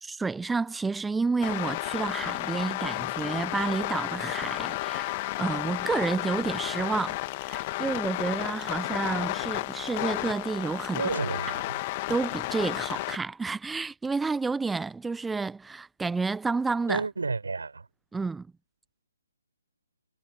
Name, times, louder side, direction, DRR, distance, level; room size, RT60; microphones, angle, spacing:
voice 1, 0.0-11.0 12.1-17.0 18.1-18.5, right 4 dB, 5° right, 0.8 m, -30 dB
sound 1, 1.4-13.2, left 21 dB, 30° left, 1.6 m, -32 dB
voice 2, 10.9-11.8 16.9-17.9, right 4 dB, 70° right, 6.4 m, -31 dB
figure-of-eight pair, 140°, 0 cm